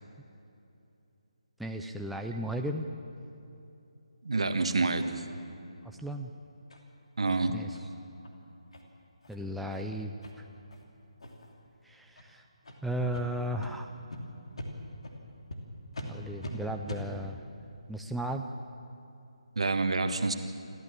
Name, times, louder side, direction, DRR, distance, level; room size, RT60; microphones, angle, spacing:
voice 1, 1.6-2.9 5.8-6.3 7.5-7.8 9.3-10.4 11.8-12.4 12.8-13.9 16.0-17.4 17.9-18.5, right 1 dB, ahead, 2 dB, 0.5 m, -35 dB
voice 2, 4.2-5.2 7.2-7.6 19.5-20.3, right 3 dB, 65° right, 8 dB, 1.6 m, -28 dB
sound 1, 6.7-6.8 7.2-7.3 7.7-7.9 8.2-8.3 8.7-8.8 9.2-9.4 9.7-9.8 10.2-10.3 10.7-10.8 11.2-11.5 12.1-12.2 12.6-12.8 13.1-13.2 13.6-13.7 14.1-14.2 14.6-14.7 15.0-15.2 15.5-15.6 15.9-16.1 16.4-16.5 16.9-17.0, left 1 dB, 60° left, 3.0 m, -41 dB
28.0 x 13.5 x 7.6 m, 2.8 s
figure-of-eight pair, 150°, 3 cm